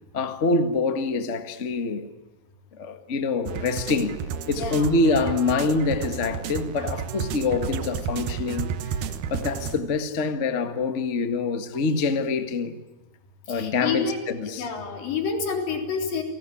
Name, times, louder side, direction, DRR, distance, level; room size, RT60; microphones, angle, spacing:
voice 1, 0.1-2.1 2.7-4.2 4.5-9.0 9.3-12.8 13.5-14.7, left 3 dB, 40° left, 1.0 m, -25 dB
sound 1, 3.5-9.8, right 7 dB, 70° right, 2.6 m, -32 dB
voice 2, 4.5-4.9 13.5-14.2 14.5-16.2, left 5 dB, 75° left, 5.5 m, -28 dB
30.0 x 19.0 x 9.9 m
omnidirectional pair, 4.0 m